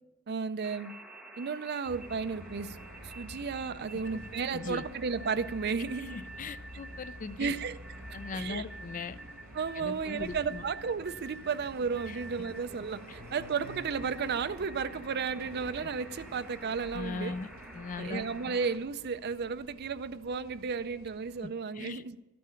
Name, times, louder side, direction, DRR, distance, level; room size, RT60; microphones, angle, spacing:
voice 1, 0.3-0.9 1.4-2.8 3.0-6.2 7.4-7.8 8.3-8.6 9.5-17.4 18.0-22.2, right 5 dB, 50° right, 12 dB, 0.5 m, -33 dB
sound 1, 0.6-18.8, right 1 dB, 5° right, 1.1 m, -50 dB
sound 2, 1.8-21.5, right 1 dB, 70° right, 2.0 m, -48 dB
voice 2, 4.5-4.8 6.1-7.5 8.1-9.2 9.7-10.6 12.1-12.2 13.1-13.2 16.9-18.5 21.4-22.0, left 4 dB, 40° left, 15 dB, 0.4 m, -39 dB
12.0 x 8.4 x 5.7 m, 1.0 s
head